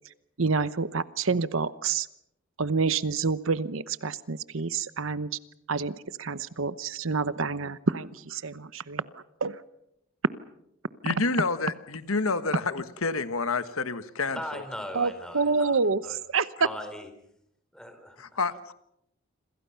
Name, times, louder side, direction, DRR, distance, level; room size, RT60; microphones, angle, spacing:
voice 1, 0.4-2.1 2.6-5.4 5.7-9.1 9.4-9.6 11.0-11.2 14.9-16.5, right 4 dB, 75° right, 15 dB, 0.9 m, -28 dB
voice 2, 11.0-14.6 18.2-18.7, left 4 dB, 90° left, 12 dB, 1.4 m, -29 dB
voice 3, 14.3-16.2 16.6-17.1 17.7-18.3, equal, 5° left, 7 dB, 3.9 m, -39 dB
28.0 x 26.0 x 5.8 m, 0.77 s
head